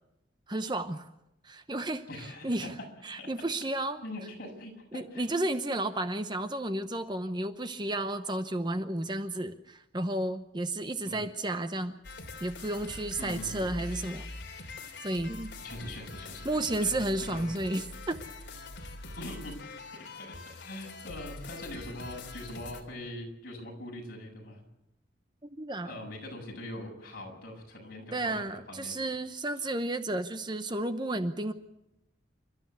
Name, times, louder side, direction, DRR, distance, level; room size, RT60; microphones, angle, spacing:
voice 1, 0.5-1.1 1.4-2.0 2.4-2.7 3.0-4.0 4.9-12.0 12.4-14.3 14.5-14.7 15.0-15.5 16.4-18.2 25.5-25.9 28.1-31.5, right 1 dB, 25° right, 9 dB, 0.9 m, -32 dB
voice 2, 2.1-2.7 3.2-3.3 4.0-5.2 11.1-11.2 13.2-13.7 15.6-16.5 16.8-17.4 19.2-24.6 25.8-29.1, left 1 dB, 50° left, 1 dB, 7.5 m, -42 dB
sound 1, 12.0-22.8, left 2 dB, 65° left, 3.1 m, -44 dB
28.5 x 13.5 x 8.2 m, 0.86 s
head